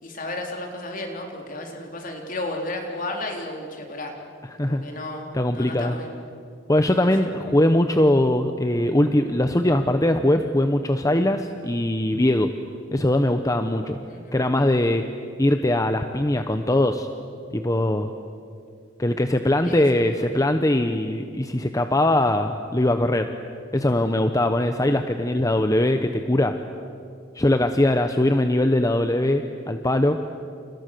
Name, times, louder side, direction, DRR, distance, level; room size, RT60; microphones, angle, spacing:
voice 1, 0.0-4.1 4.6-5.3 5.5-6.1 6.9-7.1 14.1-14.4 19.6-20.3, left 2 dB, 45° left, 2 dB, 3.9 m, -33 dB
voice 2, 5.3-6.0 6.7-12.5 12.9-14.0 14.3-15.0 15.4-17.1 17.5-18.1 19.0-23.3 23.7-26.5 27.3-30.2, left 1 dB, 20° left, 7 dB, 0.9 m, -21 dB
29.5 x 29.5 x 6.8 m, 2.4 s
head